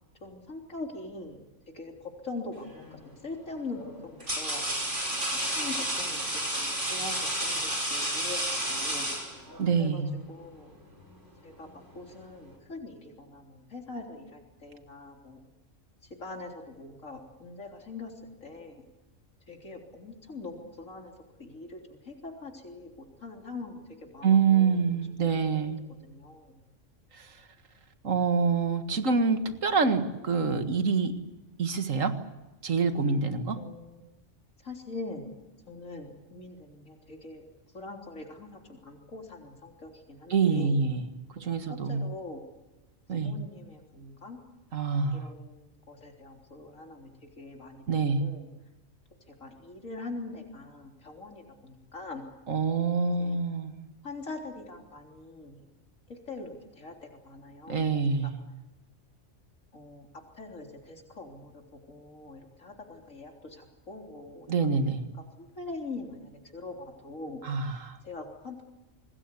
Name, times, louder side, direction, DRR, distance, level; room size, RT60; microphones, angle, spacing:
voice 1, 0.2-1.4 1.7-4.6 5.5-9.1 9.7-10.7 11.4-15.4 16.2-18.1 18.4-18.8 19.5-21.1 21.4-23.8 24.1-26.6 33.5-34.0 34.6-35.3 35.7-37.4 37.7-40.8 41.4-41.6 41.9-42.4 43.2-44.4 45.1-47.1 47.4-48.5 49.4-52.3 53.2-53.4 54.0-55.6 56.1-58.3 59.7-60.1 60.4-61.5 61.9-64.7 65.6-67.5 68.0-68.6, left 3 dB, 90° left, 1 dB, 3.9 m, -43 dB
sound 1, 2.6-2.9 3.7-9.7, right 1 dB, 65° right, 6.0 m, -31 dB
voice 2, 9.6-10.1 24.2-25.8 27.2-27.3 28.0-31.1 31.6-32.2 32.6-33.6 40.3-41.1 41.4-42.0 43.1-43.3 44.7-45.3 47.9-48.3 52.5-53.7 57.7-58.4 64.5-65.0 67.4-68.0, right 5 dB, 85° right, 8 dB, 2.2 m, -26 dB
26.5 x 19.5 x 8.4 m, 1.1 s
omnidirectional pair, 1.3 m